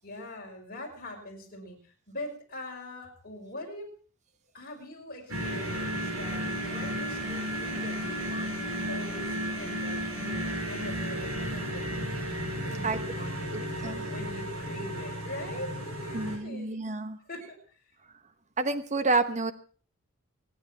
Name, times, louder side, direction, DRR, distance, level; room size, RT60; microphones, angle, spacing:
voice 1, 0.0-3.9 4.5-12.3 12.6-16.8 17.3-17.8, left 1 dB, 40° left, 0 dB, 5.4 m, -43 dB
sound 1, 5.3-16.4, equal, 75° right, 5.0 m, -33 dB
voice 2, 13.5-14.1 16.1-17.2 18.6-19.5, right 3 dB, 35° right, 11 dB, 1.1 m, -29 dB
25.5 x 9.4 x 4.5 m, 0.42 s
head